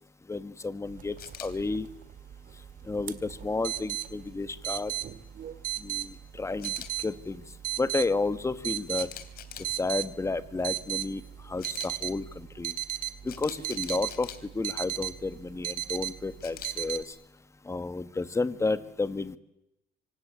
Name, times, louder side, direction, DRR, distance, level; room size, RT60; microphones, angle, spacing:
voice 1, 0.3-1.1 1.4-1.9 2.9-4.9 5.8-6.1 6.4-6.7 7.0-7.4 7.8-9.1 9.8-11.2 11.5-12.7 13.2-14.3 14.5-17.0 17.7-19.4, left 3 dB, 15° left, 12 dB, 1.6 m, -31 dB
sound 1, 0.9-17.0, right 13 dB, 55° right, 2.1 m, -37 dB
Camera, 1.2-1.5 6.6-6.9 8.9-9.7 11.6-11.9 13.3-14.4 16.4-16.7, left 10 dB, 65° left, 3.3 m, -43 dB
25.0 x 25.0 x 9.0 m, 0.89 s
cardioid pair, 110°, 17 cm